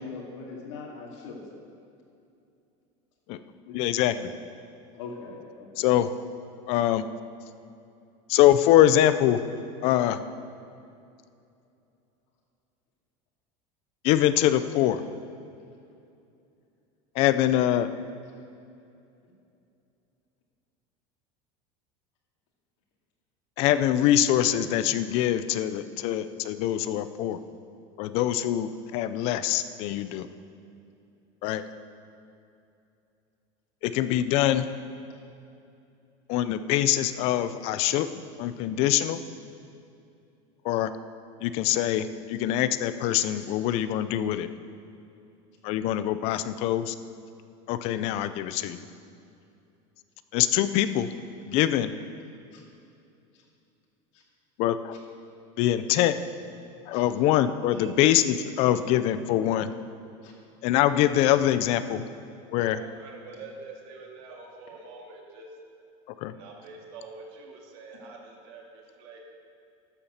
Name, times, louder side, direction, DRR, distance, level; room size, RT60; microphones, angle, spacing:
voice 1, 0.0-1.4 3.7-3.8 4.9-5.9 43.4-43.5 52.5-52.6 56.9-57.0 60.2-60.3, left 4 dB, 90° left, -3 dB, 2.3 m, -41 dB
voice 2, 3.7-4.1 5.8-6.1 6.7-7.0 8.3-9.4 9.8-10.2 14.0-15.0 17.1-17.9 23.6-27.4 28.0-30.3 31.4-31.6 33.8-34.7 36.3-38.1 38.4-39.2 40.6-40.9 41.4-44.5 45.6-47.0 47.7-48.8 50.3-51.1 51.5-51.9 54.6-54.9 55.6-56.1 56.9-59.7 60.6-62.0 62.5-62.8 66.2-66.3, left 12 dB, 40° left, 12 dB, 0.5 m, -24 dB
voice 3, 62.6-65.6 66.3-69.2, right 3 dB, 60° right, 0 dB, 2.1 m, -45 dB
13.0 x 7.1 x 6.7 m, 2.6 s
cardioid pair, 175°, 15 cm